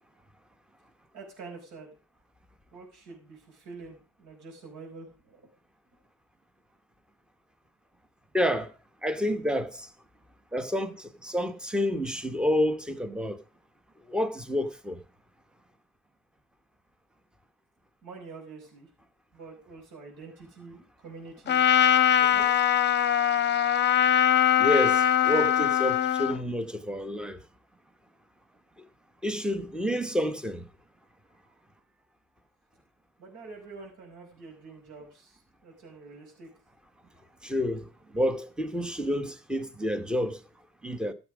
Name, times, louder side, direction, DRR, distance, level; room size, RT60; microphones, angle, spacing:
voice 1, 1.1-1.9 2.7-5.5 18.0-18.9 19.3-21.7 22.2-22.7 33.2-36.5 37.0-37.3, right 4 dB, 75° right, 5.7 m, -46 dB
voice 2, 8.3-8.7 9.0-9.9 10.5-13.4 14.1-15.0 24.6-27.4 28.8-28.9 29.2-30.6 37.4-40.4 40.8-41.1, left 1 dB, 5° right, 0.9 m, -29 dB
Trumpet, 21.5-26.4, left 10 dB, 35° left, 0.8 m, -22 dB
15.0 x 7.2 x 4.9 m
cardioid pair, 140°, 31 cm